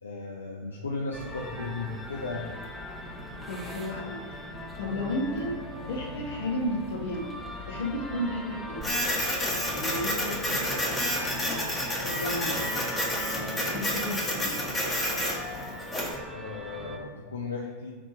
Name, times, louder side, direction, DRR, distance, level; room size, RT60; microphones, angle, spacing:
voice 1, 0.0-2.5 16.3-18.0, left 3 dB, 75° left, -2 dB, 0.5 m, -35 dB
sound 1, 1.1-17.0, left 1 dB, ahead, 0.8 m, -40 dB
voice 2, 3.5-4.3 4.8-5.6 5.8-7.4 7.7-8.9 9.7-12.6 13.6-14.6, left 1 dB, 60° left, -1 dB, 1.1 m, -33 dB
Printer, 8.8-16.2, equal, 15° left, 1.1 m, -30 dB
4.2 x 2.8 x 4.3 m, 1.5 s
figure-of-eight pair, 90°, 0 cm